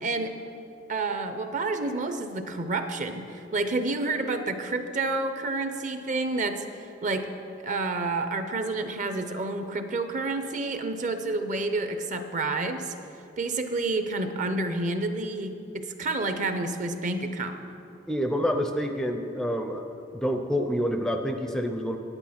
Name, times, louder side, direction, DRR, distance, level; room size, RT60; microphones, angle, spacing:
voice 1, 0.0-0.3 0.9-7.3 7.6-12.9 13.4-17.7, right 3 dB, 40° right, 8 dB, 0.6 m, -29 dB
voice 2, 18.1-19.9 20.1-22.0, equal, 5° left, 5 dB, 0.4 m, -27 dB
9.9 x 8.8 x 5.8 m, 2.8 s
head